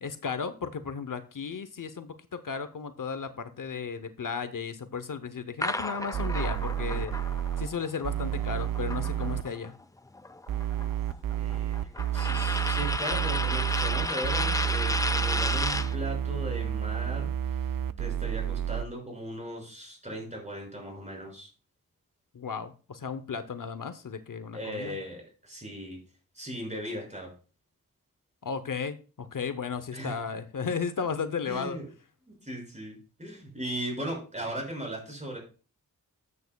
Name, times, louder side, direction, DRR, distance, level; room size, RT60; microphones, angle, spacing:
voice 1, 0.0-7.1 7.6-9.7 22.3-25.0 28.4-31.8, left 6 dB, 65° left, 11 dB, 0.8 m, -34 dB
sound 1, 5.6-9.7 10.0-16.0, left 2 dB, 10° left, 0.5 m, -33 dB
sound 2, 6.1-7.7 8.0-9.4 10.5-18.8, right 10 dB, 70° right, 0.5 m, -30 dB
voice 2, 11.4-17.7 18.0-21.5 24.5-26.0 26.3-27.3 29.9-30.2 31.5-31.9 32.3-35.4, right 1 dB, 20° right, 0 dB, 5.7 m, -38 dB
13.5 x 8.5 x 2.3 m, 0.36 s
wide cardioid pair, 70°, 35 cm